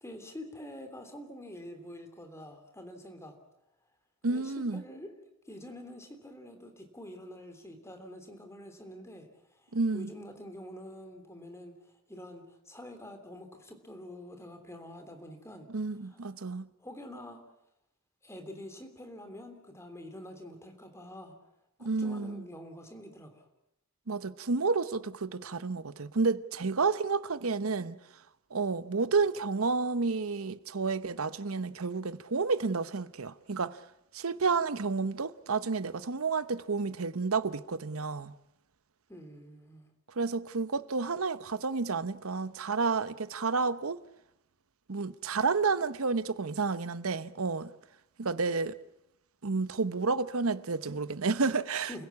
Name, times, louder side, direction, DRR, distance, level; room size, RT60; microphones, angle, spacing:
voice 1, 0.0-3.3 4.3-5.1 5.5-15.7 16.1-16.2 16.8-17.4 18.2-21.5 21.8-23.5 39.1-39.9 51.9-52.1, left 1 dB, 15° left, 3.2 m, -46 dB
voice 2, 4.2-4.8 9.7-10.1 15.7-16.7 21.8-22.4 24.1-28.0 28.5-33.8 34.1-38.3 40.1-44.0 44.9-47.7 48.2-48.8 49.4-52.0, right 4 dB, 85° right, 0.9 m, -30 dB
29.0 x 16.5 x 8.5 m
head